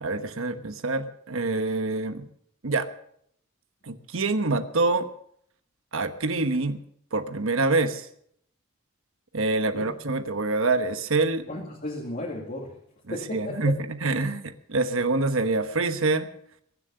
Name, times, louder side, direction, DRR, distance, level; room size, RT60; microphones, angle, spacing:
voice 1, 0.0-2.3 2.6-2.9 3.9-5.1 5.9-6.8 7.1-8.1 9.3-11.5 13.1-16.3, right 3 dB, 70° right, 9 dB, 1.1 m, -26 dB
voice 2, 11.5-12.8 13.1-13.8, left 1 dB, 40° left, -2 dB, 2.3 m, -34 dB
22.0 x 7.6 x 6.9 m, 0.68 s
head